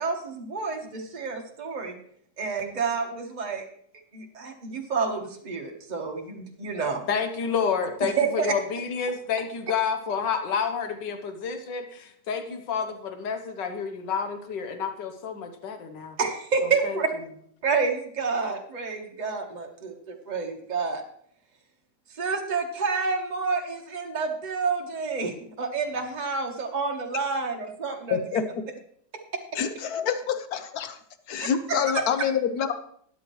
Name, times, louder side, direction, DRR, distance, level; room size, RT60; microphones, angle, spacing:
voice 1, 0.0-2.0 2.4-3.6 4.1-7.0 8.2-8.5 16.2-17.1 17.6-21.0 22.2-28.2 31.4-32.0, right 4 dB, 30° right, 2 dB, 1.2 m, -29 dB
voice 2, 7.1-16.2 16.6-17.0, left 6 dB, 90° left, 7 dB, 1.7 m, -29 dB
voice 3, 28.1-28.6 29.5-31.0 31.3-32.7, left 7 dB, 65° left, 9 dB, 1.2 m, -27 dB
13.0 x 10.0 x 3.1 m, 0.66 s
omnidirectional pair, 1.9 m